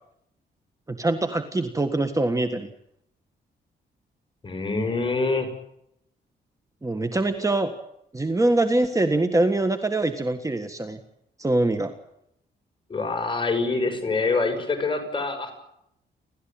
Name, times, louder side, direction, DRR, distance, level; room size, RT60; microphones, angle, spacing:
voice 1, 0.9-2.7 6.8-7.7 8.1-11.0 11.4-11.9, right 2 dB, 15° right, 8 dB, 1.6 m, -23 dB
voice 2, 4.4-5.5 12.9-15.5, left 3 dB, 25° left, 5 dB, 6.1 m, -25 dB
30.0 x 13.0 x 8.8 m, 0.78 s
cardioid pair, 110°, 18 cm